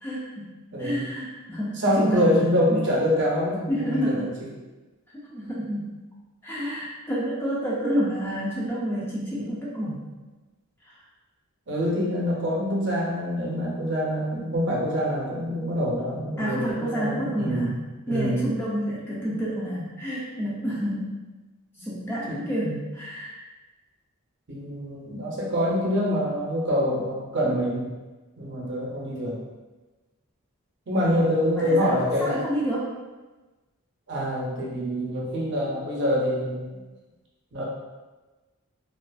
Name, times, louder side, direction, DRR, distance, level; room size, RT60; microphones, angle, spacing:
voice 1, 0.0-0.5 0.8-2.8 3.7-4.4 5.1-5.9 6.4-10.1 10.8-11.0 16.4-17.7 18.1-21.2 21.8-23.3 31.5-31.9 32.2-32.9, equal, 10° left, -6 dB, 0.3 m, -29 dB
voice 2, 0.7-1.1 1.8-4.2 11.7-17.7 18.1-18.5 22.3-22.5 24.5-27.9 28.4-29.4 30.9-32.3 34.1-36.8 37.5-37.6, equal, 55° right, -4 dB, 0.6 m, -25 dB
2.4 x 2.3 x 2.2 m, 1.2 s
head